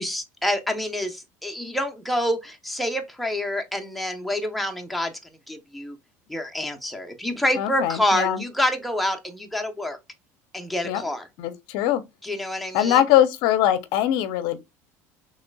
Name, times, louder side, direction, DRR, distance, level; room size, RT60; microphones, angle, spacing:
voice 1, 0.0-5.1 5.5-6.0 6.3-10.0 10.5-11.2 12.2-13.0, left 1 dB, ahead, 0.8 m, -27 dB
voice 2, 7.5-8.4 10.8-11.0 11.4-12.0 12.7-14.6, left 11 dB, 75° left, 0.5 m, -22 dB
3.7 x 3.2 x 2.3 m
supercardioid pair, 85°, 8 cm